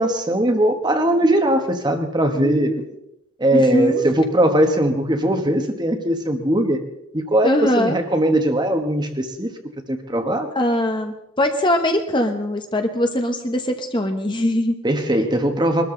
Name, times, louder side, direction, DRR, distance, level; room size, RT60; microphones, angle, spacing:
voice 1, 0.0-2.7 3.4-6.8 7.1-9.5 9.9-10.5 14.8-15.8, right 1 dB, 20° right, 5 dB, 1.3 m, -20 dB
voice 2, 2.4-2.8 3.5-4.0 7.4-8.0 10.5-14.7, left 1 dB, 20° left, 5 dB, 1.1 m, -21 dB
23.0 x 13.0 x 3.9 m, 0.86 s
head